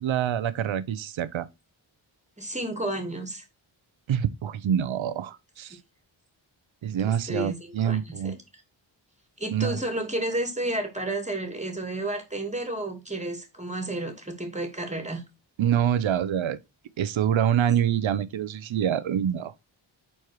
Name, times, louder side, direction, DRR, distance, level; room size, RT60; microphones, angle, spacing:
voice 1, 0.0-1.5 4.1-5.8 6.8-8.3 9.5-9.8 15.6-16.6 17.0-19.5, right 9 dB, 70° right, 0.7 m, -26 dB
voice 2, 2.4-3.4 7.0-8.4 9.4-15.2, right 1 dB, 15° right, 2.3 m, -31 dB
4.6 x 4.3 x 4.7 m
cardioid pair, 45°, 48 cm